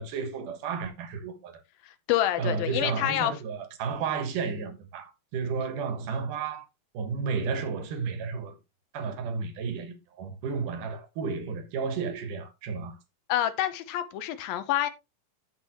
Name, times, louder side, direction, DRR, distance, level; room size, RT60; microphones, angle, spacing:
voice 1, 0.0-1.6 2.4-6.7 6.9-8.6 8.9-13.0, right 5 dB, 65° right, 2.7 m, -32 dB
voice 2, 1.8-3.3 13.3-14.9, left 12 dB, 75° left, 2.4 m, -27 dB
14.5 x 5.4 x 3.0 m
omnidirectional pair, 4.6 m